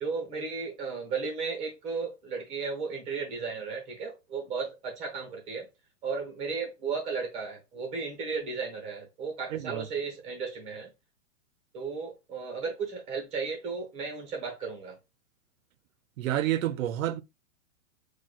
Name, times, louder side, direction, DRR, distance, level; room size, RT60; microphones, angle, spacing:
voice 1, 0.0-5.7 6.0-10.9 11.7-15.0, right 5 dB, 15° right, 0.8 m, -34 dB
voice 2, 9.5-9.9 16.2-17.2, right 13 dB, 85° right, 0.6 m, -29 dB
6.3 x 2.3 x 2.2 m
hypercardioid pair, 165°, 40 cm